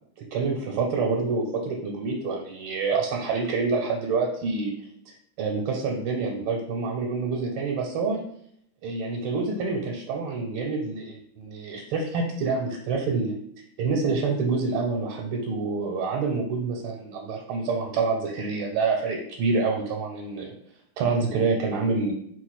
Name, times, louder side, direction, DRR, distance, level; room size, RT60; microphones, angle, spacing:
voice 1, 0.2-4.7 5.1-8.2 8.8-13.3 13.8-20.5 21.0-22.1, right 4 dB, 85° right, 0 dB, 1.5 m, -27 dB
4.3 x 2.5 x 4.1 m, 0.68 s
omnidirectional pair, 2.4 m